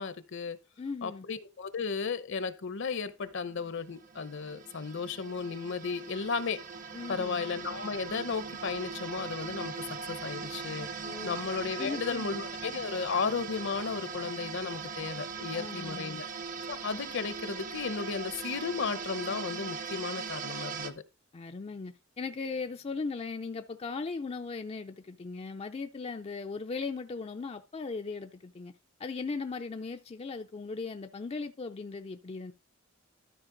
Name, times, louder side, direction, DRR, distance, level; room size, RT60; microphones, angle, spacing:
voice 1, 0.0-0.6 1.0-6.6 7.1-10.9 11.2-16.3 16.7-21.0, left 5 dB, 60° left, 0.8 m, -34 dB
voice 2, 0.8-1.2 6.9-7.4 11.0-11.4 11.8-12.3 15.5-16.2 21.3-28.7 29.0-32.5, left 4 dB, 30° left, 0.4 m, -38 dB
sound 1, 3.2-20.9, right 5 dB, 40° right, 0.8 m, -40 dB
13.0 x 5.1 x 3.8 m
head